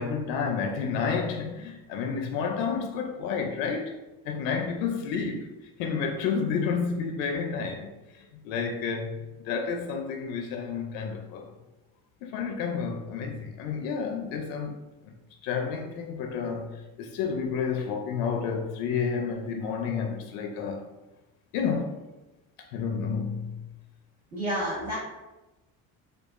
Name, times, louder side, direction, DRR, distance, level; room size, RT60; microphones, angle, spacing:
voice 1, 0.0-3.9 4.2-5.5 5.8-11.5 12.2-14.7 15.4-20.9 21.5-22.0 22.7-23.6, left 5 dB, 75° left, 0.5 m, -30 dB
voice 2, 24.3-25.0, equal, 25° right, 1.2 m, -29 dB
4.6 x 2.3 x 2.5 m
cardioid pair, 170°, 34 cm